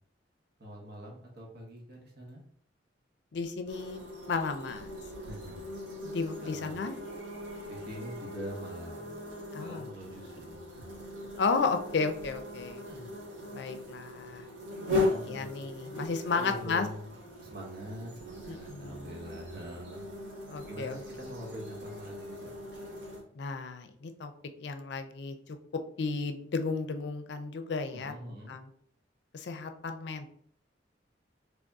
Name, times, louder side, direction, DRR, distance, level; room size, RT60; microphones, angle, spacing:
voice 1, 0.6-2.4 5.2-5.7 6.4-6.8 7.7-9.2 9.5-10.9 12.9-13.1 15.0-15.5 16.3-17.1 17.4-20.0 20.6-22.5 27.9-28.6, equal, 60° right, -1 dB, 1.0 m, -44 dB
voice 2, 3.3-4.0 4.3-4.9 6.0-7.0 9.5-9.9 11.4-12.8 13.5-14.5 15.2-16.9 18.5-19.2 20.5-21.0 23.3-24.3 24.6-25.4 26.0-28.1 28.5-28.7 29.3-30.3, left 4 dB, 65° left, 8 dB, 0.4 m, -33 dB
sound 1, 3.7-23.2, left 2 dB, 85° right, 1.1 m, -39 dB
3.4 x 2.6 x 3.4 m, 0.62 s
head